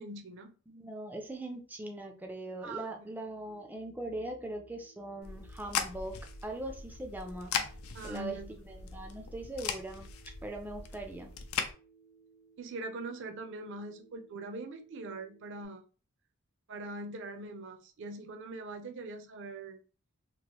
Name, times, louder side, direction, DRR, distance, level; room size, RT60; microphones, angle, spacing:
voice 1, 0.0-0.5 2.6-3.1 7.9-8.6 12.6-15.8 16.7-19.8, right 2 dB, 60° right, 6 dB, 0.5 m, -42 dB
voice 2, 0.7-6.2 6.4-7.5 8.0-10.1 10.4-11.3, right 1 dB, 10° right, 3 dB, 0.3 m, -41 dB
Telephone, 3.5-15.7, right 5 dB, 45° left, 0.9 m, -62 dB
sound 1, 5.2-11.7, left 6 dB, 85° left, 0.5 m, -39 dB
3.0 x 2.4 x 2.9 m, 0.36 s
head